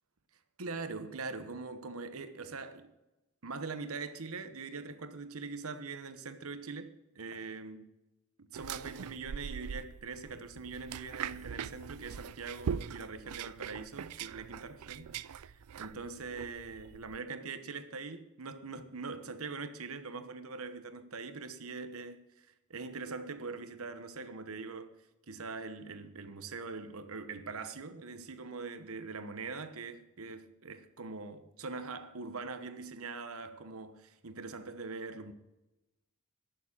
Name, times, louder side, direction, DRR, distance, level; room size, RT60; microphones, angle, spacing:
voice 1, 0.6-2.9 3.4-7.9 8.5-24.9 25.3-35.3, right 4 dB, 70° right, 1.1 m, -42 dB
sound 1, 8.5-17.2, right 7 dB, 90° right, 0.4 m, -42 dB
11.5 x 7.2 x 8.7 m
head